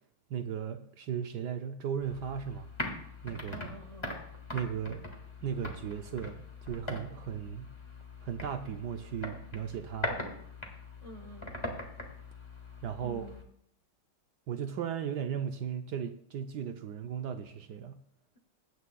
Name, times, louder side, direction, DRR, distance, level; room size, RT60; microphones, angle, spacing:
voice 1, 0.3-2.7 3.2-3.6 4.5-5.0 5.4-7.7 8.2-10.1 12.8-13.3 14.5-18.0, right 8 dB, 70° right, 7 dB, 1.0 m, -36 dB
sound 1, 2.0-13.4, left 2 dB, 15° left, 1.5 m, -41 dB
voice 2, 3.5-4.2 11.0-11.5 13.0-13.5, right 1 dB, 60° left, 2 dB, 0.3 m, -48 dB
22.0 x 9.3 x 2.3 m, 0.70 s
omnidirectional pair, 2.3 m